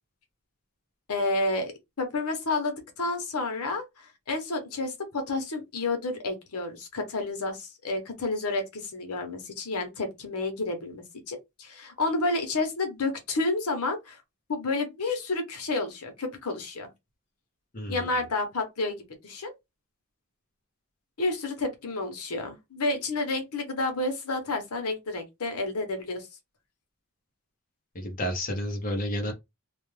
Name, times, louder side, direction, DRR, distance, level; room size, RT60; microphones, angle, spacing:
voice 1, 1.1-1.7 2.0-14.2 14.5-16.9 17.9-19.5 21.2-26.3, left 2 dB, 85° left, 0.9 m, -30 dB
voice 2, 17.7-18.3 27.9-29.3, equal, 40° left, 0.7 m, -31 dB
2.4 x 2.2 x 3.1 m
head